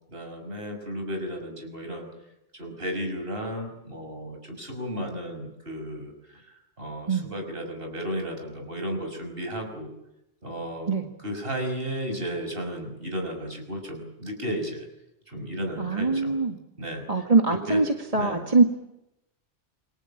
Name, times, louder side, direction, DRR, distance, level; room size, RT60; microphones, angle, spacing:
voice 1, 0.1-2.1 2.5-9.9 10.4-10.9 11.2-14.9 15.3-16.3 16.8-17.1 17.5-17.8 18.1-18.4, equal, 55° right, 4 dB, 6.3 m, -34 dB
voice 2, 15.8-16.6 17.1-18.6, right 3 dB, 30° right, 3 dB, 1.9 m, -22 dB
28.5 x 22.5 x 8.8 m, 0.89 s
omnidirectional pair, 1.2 m